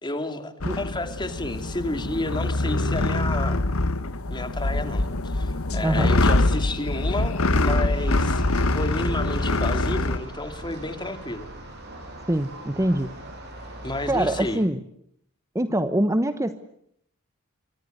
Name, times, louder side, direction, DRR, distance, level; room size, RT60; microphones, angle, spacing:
voice 1, 0.0-3.6 4.3-8.4 8.7-11.5 13.8-14.6, left 2 dB, 20° left, 8 dB, 2.8 m, -31 dB
sound 1, 0.6-10.2, left 2 dB, 90° left, 1.5 m, -24 dB
sound 2, 7.9-14.5, right 1 dB, 55° right, 7.0 m, -40 dB
voice 2, 12.3-13.1 14.1-14.8 15.5-16.6, right 1 dB, 15° right, 11 dB, 1.0 m, -24 dB
27.5 x 24.0 x 8.1 m, 0.70 s
head